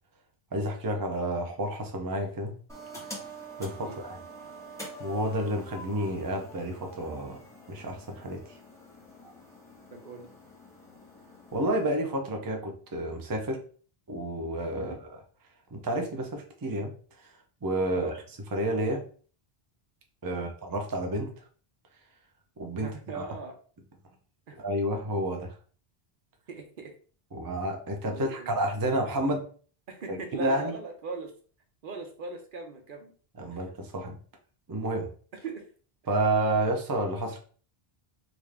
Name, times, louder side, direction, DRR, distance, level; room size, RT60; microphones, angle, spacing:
voice 1, 0.5-2.5 3.6-4.2 5.0-7.4 7.7-8.4 11.5-13.6 14.1-15.2 15.7-16.9 17.2-17.3 17.6-18.1 18.5-19.0 20.2-21.3 22.6-23.2 24.6-25.5 27.3-29.5 30.1-30.7 33.4-34.2 34.7-35.1 36.1-37.4, right 1 dB, 30° right, 3 dB, 0.5 m, -30 dB
sound 1, 2.7-11.9, right 1 dB, 5° left, 1.2 m, -46 dB
voice 2, 9.9-10.3 14.8-15.0 17.9-18.1 20.3-20.5 22.8-23.6 24.5-24.6 26.5-26.9 28.1-28.5 29.9-31.3 31.8-33.1 33.5-33.6 35.4-35.6, right 4 dB, 60° right, 4 dB, 0.8 m, -39 dB
3.5 x 2.5 x 3.3 m, 0.42 s
omnidirectional pair, 1.0 m